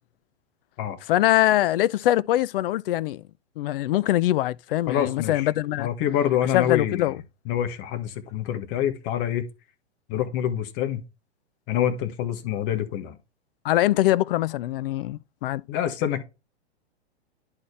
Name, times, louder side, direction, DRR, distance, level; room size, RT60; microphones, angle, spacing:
voice 1, 1.1-3.2 3.6-5.9 6.5-7.2 13.6-15.6, left 14 dB, 55° left, 0.5 m, -23 dB
voice 2, 4.9-5.5 5.8-7.1 7.5-9.5 10.1-11.0 11.7-13.2 15.7-16.2, left 10 dB, 40° left, 1.5 m, -26 dB
10.5 x 4.3 x 3.2 m
hypercardioid pair, 120°, 34 cm